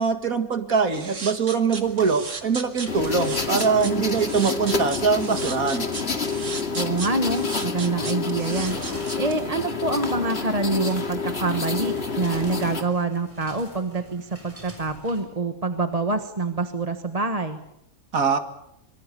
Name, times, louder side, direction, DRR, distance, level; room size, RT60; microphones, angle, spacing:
voice 1, 0.0-5.9 18.1-18.4, right 5 dB, 80° right, 7 dB, 2.4 m, -23 dB
sound 1, 0.9-9.3, right 4 dB, 60° right, 2.4 m, -35 dB
sound 2, 1.8-15.2, equal, 10° right, 6.3 m, -47 dB
sound 3, 2.9-12.8, left 4 dB, 45° left, 2.4 m, -28 dB
voice 2, 6.7-8.8 9.2-17.6, right 3 dB, 25° right, 7 dB, 1.4 m, -26 dB
25.5 x 24.5 x 6.9 m, 0.79 s
omnidirectional pair, 1.5 m